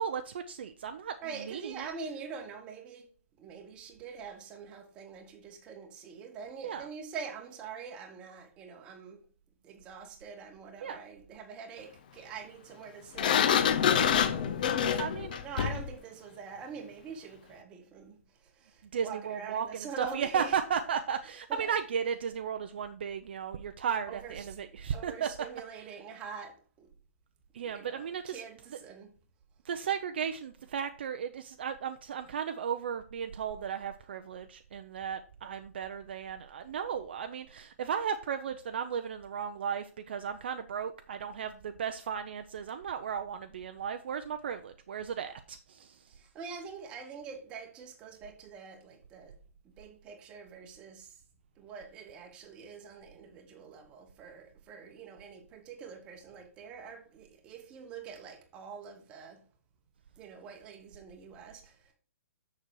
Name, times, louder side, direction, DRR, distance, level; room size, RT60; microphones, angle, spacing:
voice 1, 0.0-1.9 6.6-6.9 10.8-11.0 13.9-14.2 15.0-15.3 18.9-25.3 27.5-28.4 29.6-46.2, right 7 dB, 40° right, 0.5 m, -35 dB
voice 2, 1.2-3.1 3.4-9.3 9.6-15.0 15.3-20.5 21.5-21.7 24.1-24.5 24.9-26.9 27.6-29.1 46.1-49.3 49.6-51.2 51.6-59.4 60.2-61.9, right 6 dB, 10° right, 0.9 m, -45 dB
Sliding door, 13.2-15.9, left 8 dB, 30° left, 0.4 m, -26 dB
6.7 x 6.2 x 4.6 m
hypercardioid pair, 175°, 8 cm